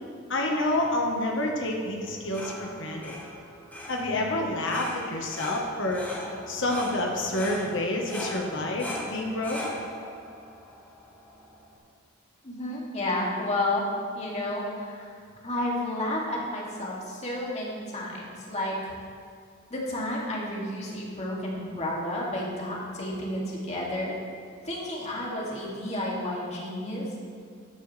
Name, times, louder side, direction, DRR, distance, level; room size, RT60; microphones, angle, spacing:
voice 1, 0.3-3.2 3.9-6.1 6.5-9.6, left 1 dB, 65° left, 0 dB, 1.4 m, -28 dB
sound 1, 2.0-11.7, left 1 dB, 10° left, 1.8 m, -40 dB
voice 2, 12.4-13.8 14.1-15.1 15.4-18.9 19.7-24.2 24.6-27.1, left 1 dB, 35° left, -4 dB, 2.5 m, -31 dB
13.5 x 11.5 x 3.4 m, 2.2 s
head